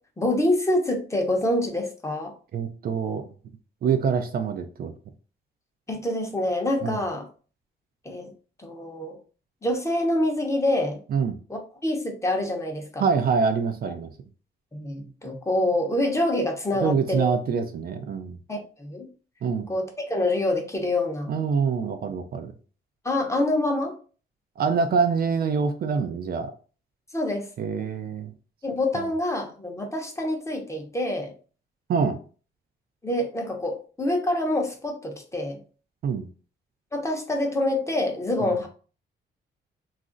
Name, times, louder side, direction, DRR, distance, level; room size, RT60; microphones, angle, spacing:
voice 1, 0.2-2.3 5.9-7.3 8.0-8.3 8.6-9.2 9.6-11.0 11.5-13.0 14.7-17.3 18.5-19.1 19.7-21.3 23.0-23.9 27.1-27.5 28.6-31.3 33.0-35.6 36.9-38.7, left 1 dB, 15° left, 2 dB, 0.7 m, -26 dB
voice 2, 2.5-3.2 3.8-4.9 6.8-7.0 11.1-11.4 13.0-14.1 16.8-18.4 19.4-19.7 21.3-22.5 24.6-26.5 27.6-28.3 28.9-29.1 31.9-32.2 36.0-36.3 38.4-38.5, right 5 dB, 50° right, 7 dB, 0.4 m, -25 dB
2.4 x 2.0 x 3.7 m, 0.39 s
cardioid pair, 90°, 20 cm